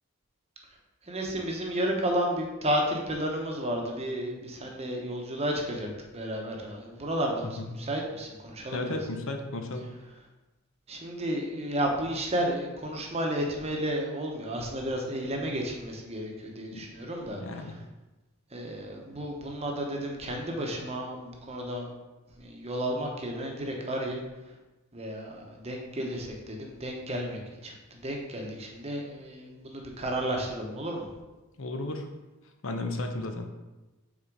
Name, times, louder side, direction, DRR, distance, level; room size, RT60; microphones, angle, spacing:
voice 1, 1.0-5.9 6.1-9.0 10.9-17.7 18.5-21.9 22.4-24.2 24.9-31.1, equal, 30° right, 1 dB, 1.0 m, -32 dB
voice 2, 8.7-9.9 16.7-16.8 17.4-17.7 31.6-32.1 32.6-33.5, left 2 dB, 60° left, 5 dB, 0.7 m, -34 dB
6.1 x 4.2 x 4.7 m, 1.1 s
head